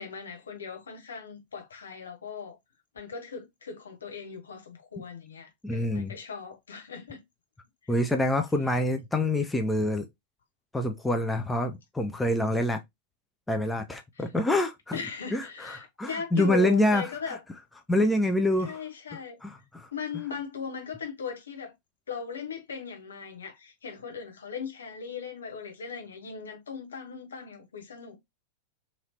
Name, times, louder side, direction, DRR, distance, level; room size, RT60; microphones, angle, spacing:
voice 1, 0.0-2.6 2.9-7.2 7.8-7.9 14.2-14.3 14.9-17.4 18.6-19.4 19.9-21.7 22.1-28.2, left 6 dB, 70° left, 0.9 m, -38 dB
voice 2, 5.6-6.1 7.9-10.1 10.7-12.8 13.5-15.0 15.3-17.0 17.9-18.8 19.4-19.9, left 1 dB, 10° left, 0.4 m, -26 dB
2.8 x 2.8 x 2.7 m
figure-of-eight pair, 90°, 0 cm